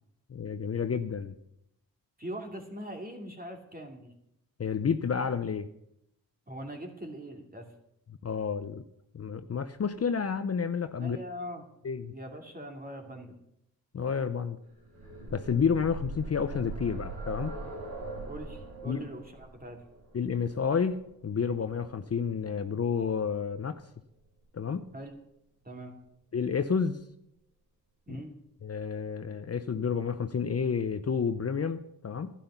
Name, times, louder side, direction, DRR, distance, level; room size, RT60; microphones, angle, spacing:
voice 1, 0.3-1.3 4.6-5.7 8.2-8.8 9.1-11.2 11.8-12.1 13.9-14.6 15.3-17.5 18.9-19.0 20.1-23.8 24.5-24.8 26.3-27.0 28.1-28.2 28.6-32.3, left 6 dB, 40° left, 10 dB, 0.7 m, -30 dB
voice 2, 2.2-4.1 6.5-7.7 11.0-11.6 12.1-13.3 18.2-19.8 24.9-25.2 25.6-25.9 28.1-28.4, equal, 25° right, 3 dB, 2.7 m, -41 dB
sound 1, 14.7-22.5 23.7-23.8 24.2-24.3, right 2 dB, 75° right, 4.3 m, -42 dB
11.5 x 10.0 x 5.7 m, 0.79 s
cardioid pair, 55°, 37 cm